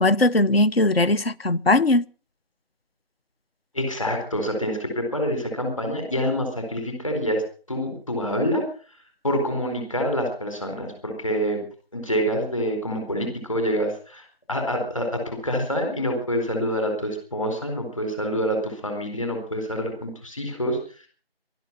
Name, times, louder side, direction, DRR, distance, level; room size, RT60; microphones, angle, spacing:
voice 1, 0.0-2.0, left 2 dB, 70° left, 0.8 m, -19 dB
voice 2, 3.7-7.4 7.7-8.7 9.2-11.6 11.9-21.1, equal, 30° left, 4.3 m, -26 dB
19.5 x 12.0 x 5.4 m
figure-of-eight pair, 170°, 31 cm